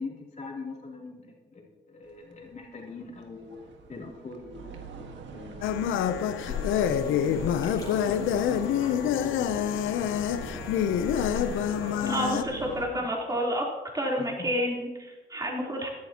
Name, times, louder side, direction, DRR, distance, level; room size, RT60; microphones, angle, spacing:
voice 1, 0.0-3.6 3.9-4.8 5.3-5.9 6.9-13.1 14.2-14.5, left 3 dB, 35° left, -2 dB, 3.1 m, -42 dB
sound 1, 2.0-12.8, right 5 dB, 70° right, 1.6 m, -44 dB
sound 2, 5.6-12.4, left 9 dB, 85° left, 0.7 m, -27 dB
sound 3, 6.4-12.3, left 1 dB, 20° left, 2.9 m, -44 dB
voice 2, 12.1-13.7 13.9-15.9, equal, 20° right, -2 dB, 3.6 m, -29 dB
16.0 x 11.5 x 2.9 m, 1.2 s
cardioid pair, 90°, 20 cm